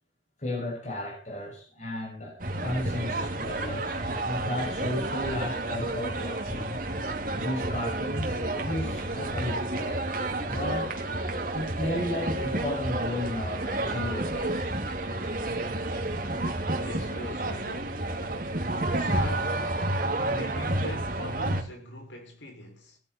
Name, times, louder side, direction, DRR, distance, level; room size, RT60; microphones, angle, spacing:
voice 1, 0.4-6.8 7.3-10.0 10.4-11.0 11.5-14.8, left 1 dB, 40° left, 6.7 m, -34 dB
sound 1, 2.4-21.6, right 2 dB, 45° right, 2.5 m, -30 dB
voice 2, 16.7-18.0 18.9-19.6 20.2-23.0, left 1 dB, 80° left, 5.9 m, -41 dB
18.5 x 13.5 x 4.4 m
head